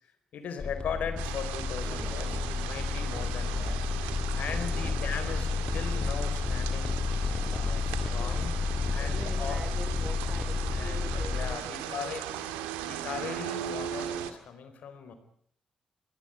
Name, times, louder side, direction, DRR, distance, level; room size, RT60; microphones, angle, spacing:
voice 1, 0.3-3.8 4.4-7.0 7.5-8.5 8.9-9.6 10.7-12.3 12.9-15.1, left 7 dB, 70° left, 9 dB, 4.5 m, -39 dB
sound 1, 0.6-11.6, left 4 dB, 40° left, 2.3 m, -31 dB
sound 2, 1.2-14.3, right 10 dB, 90° right, 1.9 m, -38 dB
sound 3, 1.9-10.2, right 6 dB, 60° right, 3.1 m, -54 dB
voice 2, 4.2-5.0 7.9-8.4 9.0-12.4, right 1 dB, 20° right, 12 dB, 3.6 m, -45 dB
24.0 x 17.5 x 9.3 m, 0.63 s
hypercardioid pair, 45°, 3 cm